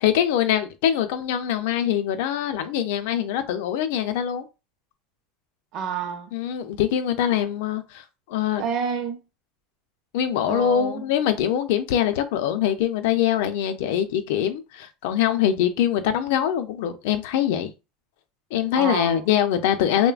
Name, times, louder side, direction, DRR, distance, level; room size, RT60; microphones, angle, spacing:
voice 1, 0.0-4.5 6.3-8.6 10.1-17.7 18.5-20.1, left 10 dB, 75° left, 0.4 m, -23 dB
voice 2, 5.7-6.3 8.6-9.2 10.5-11.0 18.7-19.3, right 7 dB, 45° right, 0.5 m, -29 dB
3.2 x 2.1 x 2.4 m
supercardioid pair, 140°, 0 cm